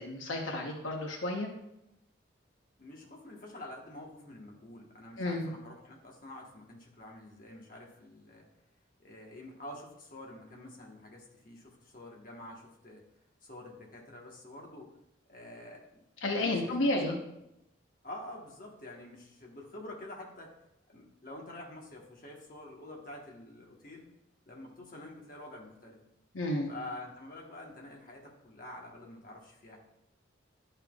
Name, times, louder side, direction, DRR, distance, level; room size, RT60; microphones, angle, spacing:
voice 1, 0.0-1.5 5.2-5.5 16.2-17.2 26.3-26.7, left 1 dB, 80° left, 1 dB, 1.0 m, -31 dB
voice 2, 2.8-8.5 9.0-13.0 13.4-14.9 15.3-16.0 16.3-17.2 18.0-20.5 20.9-24.1 24.5-26.0 26.7-29.8, left 1 dB, 45° left, -1 dB, 1.3 m, -47 dB
10.5 x 5.6 x 2.4 m, 0.85 s
head